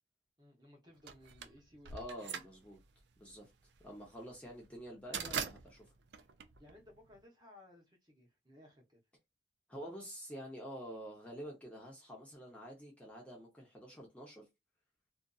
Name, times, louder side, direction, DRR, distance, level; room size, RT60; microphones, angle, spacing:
voice 1, 0.4-2.4 6.6-9.0, left 1 dB, 20° right, 0.8 m, -60 dB
sound 1, 1.1-7.2, right 7 dB, 70° right, 0.4 m, -43 dB
voice 2, 1.9-2.8 3.2-3.5 3.8-5.9 9.7-14.5, equal, 5° left, 0.7 m, -48 dB
2.5 x 2.5 x 2.3 m
head